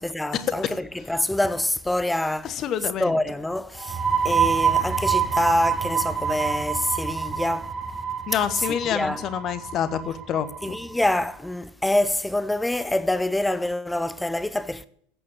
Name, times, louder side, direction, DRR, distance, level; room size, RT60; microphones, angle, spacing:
voice 1, 0.0-2.6 3.0-7.7 8.6-9.3 10.6-14.9, left 1 dB, 5° left, 0.8 m, -26 dB
voice 2, 2.4-3.1 8.3-10.8, left 9 dB, 40° left, 1.3 m, -27 dB
sound 1, 3.7-11.2, right 7 dB, 25° right, 1.4 m, -26 dB
15.5 x 8.7 x 8.8 m
figure-of-eight pair, 75°, 0 cm